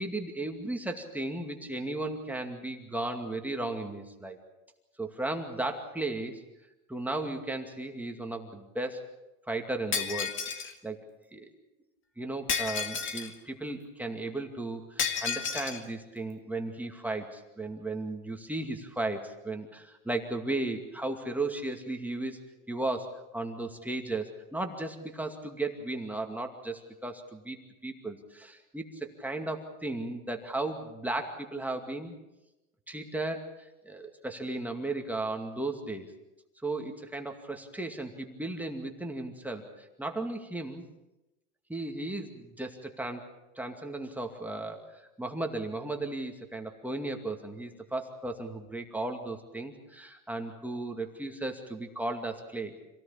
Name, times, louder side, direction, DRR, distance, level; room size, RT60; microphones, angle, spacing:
voice 1, 0.0-4.4 5.0-6.4 6.9-9.0 9.5-11.0 11.3-11.5 12.2-22.4 22.7-27.6 27.8-32.1 32.9-36.1 36.6-40.8 41.7-43.3 43.6-52.7, right 2 dB, 5° right, 3 dB, 2.3 m, -35 dB
Shatter, 9.9-10.7 12.5-13.3 15.0-15.8, left 6 dB, 30° left, 2.1 m, -31 dB
26.5 x 17.5 x 7.3 m, 0.98 s
supercardioid pair, 130°, 42 cm